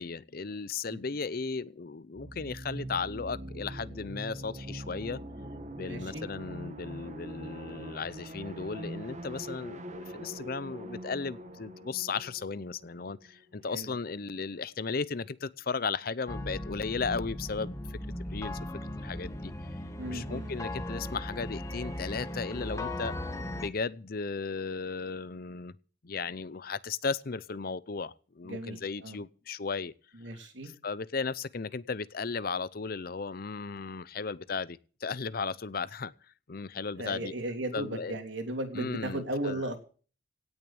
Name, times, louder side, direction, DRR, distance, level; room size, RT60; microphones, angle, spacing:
voice 1, 0.0-5.2 5.8-9.8 10.2-13.2 13.6-15.2 15.7-17.7 18.3-18.5 19.0-19.3 20.1-23.1 23.6-25.7 26.1-28.1 28.4-29.9 30.8-34.7 35.0-36.1 36.5-37.3 37.7-38.1 38.7-39.6, left 4 dB, 55° left, 19 dB, 0.7 m, -35 dB
sound 1, 2.2-13.7, right 1 dB, 40° right, 1.8 m, -43 dB
voice 2, 5.8-6.2 13.7-13.9 20.0-20.5 28.4-29.2 30.2-30.7 37.0-39.8, right 1 dB, 90° right, 5 dB, 3.2 m, -36 dB
sound 2, 16.3-23.7, left 1 dB, 15° left, 1.5 m, -37 dB
17.5 x 6.6 x 8.7 m, 0.40 s
head